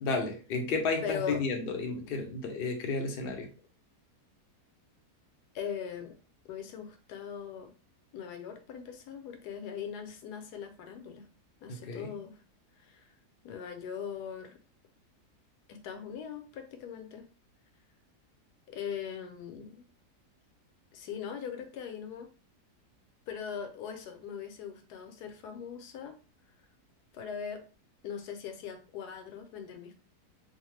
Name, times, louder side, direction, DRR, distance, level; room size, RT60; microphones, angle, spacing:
voice 1, 0.0-3.5 11.7-12.1, left 3 dB, 60° left, 3 dB, 0.6 m, -32 dB
voice 2, 1.0-1.4 5.5-6.1 6.5-7.7 8.1-11.2 11.6-12.4 12.8-13.1 13.4-14.6 15.7-17.2 18.7-19.8 20.9-22.3 23.3-26.2 27.1-27.6 28.0-30.0, left 7 dB, 80° left, 6 dB, 1.1 m, -40 dB
2.8 x 2.0 x 3.1 m, 0.36 s
omnidirectional pair, 1.7 m